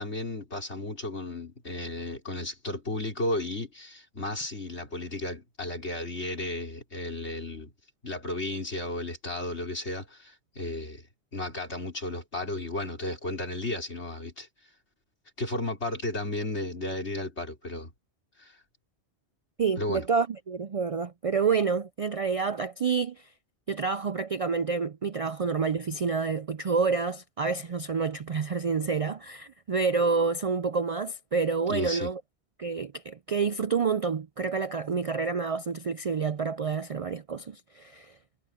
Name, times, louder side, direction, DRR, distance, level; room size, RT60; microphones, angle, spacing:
voice 1, 0.0-7.7 8.0-11.1 11.3-14.5 15.4-17.9 18.4-18.6 19.8-20.1 31.7-32.1, left 1 dB, 75° left, 5.1 m, -34 dB
voice 2, 19.6-23.3 23.7-32.2 32.6-38.1, right 5 dB, 55° right, 0.4 m, -28 dB
omnidirectional pair, 1.1 m